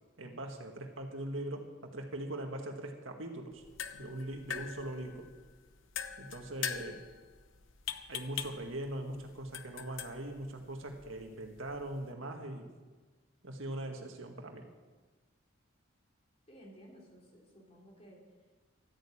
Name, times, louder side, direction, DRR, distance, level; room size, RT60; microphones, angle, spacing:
voice 1, 0.2-3.6 3.9-5.3 6.2-7.0 8.1-12.7 13.4-14.7, right 1 dB, 70° right, 3 dB, 1.9 m, -41 dB
sound 1, 3.5-12.1, left 8 dB, 65° left, 0.9 m, -44 dB
voice 2, 16.5-18.5, equal, 30° left, -2 dB, 3.6 m, -56 dB
13.5 x 9.2 x 8.6 m, 1.4 s
head